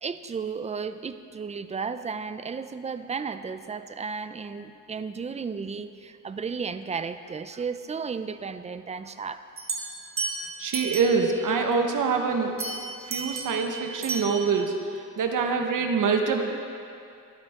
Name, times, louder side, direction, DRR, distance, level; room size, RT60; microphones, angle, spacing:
voice 1, 0.0-9.5, right 5 dB, 20° right, 11 dB, 0.4 m, -34 dB
sound 1, 9.6-11.4 12.6-14.6, right 3 dB, 40° right, 1.3 m, -34 dB
voice 2, 10.6-12.6 13.1-16.4, right 5 dB, 75° right, 3 dB, 1.3 m, -25 dB
22.5 x 9.7 x 3.7 m, 2.5 s
wide cardioid pair, 165°, 32 cm